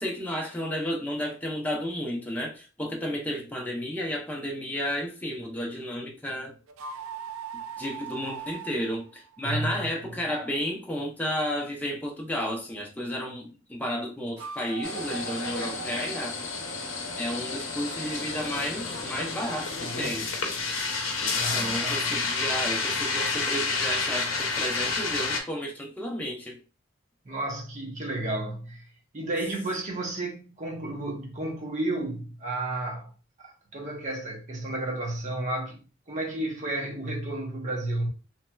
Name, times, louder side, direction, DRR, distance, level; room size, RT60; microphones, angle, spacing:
voice 1, 0.0-6.5 7.8-16.4 17.2-20.4 21.2-26.6, equal, 10° left, 0.6 m, -32 dB
sound 1, 6.7-10.0 14.3-16.4, right 6 dB, 80° right, 0.3 m, -40 dB
voice 2, 9.4-9.8 21.3-22.0 27.2-28.8 29.1-33.1 33.4-35.8 36.1-38.1, right 2 dB, 40° right, 0.9 m, -32 dB
sound 2, 14.8-25.4, left 4 dB, 70° left, 0.7 m, -30 dB
3.1 x 2.7 x 2.2 m
head